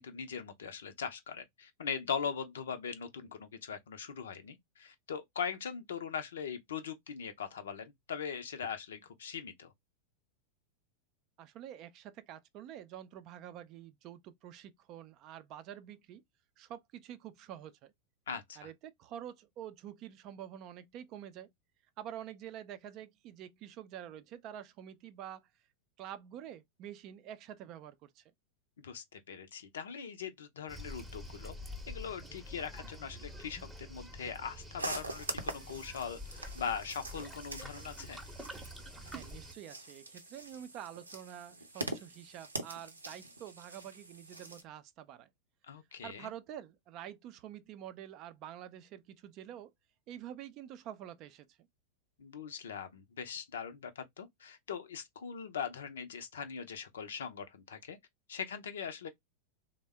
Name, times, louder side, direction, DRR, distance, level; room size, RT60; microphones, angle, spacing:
voice 1, 0.0-9.7 18.3-18.7 28.8-31.5 31.9-38.2 45.7-46.3 52.2-58.0 58.3-59.1, left 7 dB, 65° left, 0.6 m, -41 dB
voice 2, 11.4-16.2 16.6-17.9 18.6-21.5 22.0-25.5 26.0-28.2 39.1-45.3 46.0-49.7 50.1-51.6, right 10 dB, 40° right, 0.4 m, -47 dB
Waves surf, 30.7-39.5, left 1 dB, 5° right, 0.8 m, -47 dB
sound 1, 34.8-44.6, right 2 dB, 80° right, 0.6 m, -44 dB
3.4 x 2.1 x 3.3 m
figure-of-eight pair, 90°, 0 cm